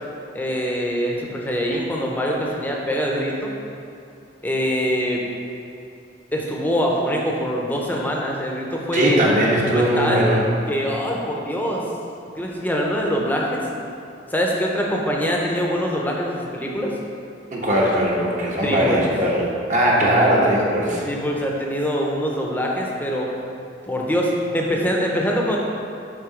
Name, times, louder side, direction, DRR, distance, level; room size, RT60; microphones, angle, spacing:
voice 1, 0.3-3.5 4.4-5.2 6.3-9.2 9.7-10.3 10.7-11.8 12.4-13.6 14.3-17.0 18.6-19.0 21.0-23.3 23.8-25.6, equal, 10° left, -2 dB, 0.7 m, -24 dB
voice 2, 8.9-10.4 17.5-19.4 19.7-21.0, right 1 dB, 45° right, -4 dB, 1.1 m, -19 dB
7.0 x 3.7 x 5.0 m, 2.5 s
head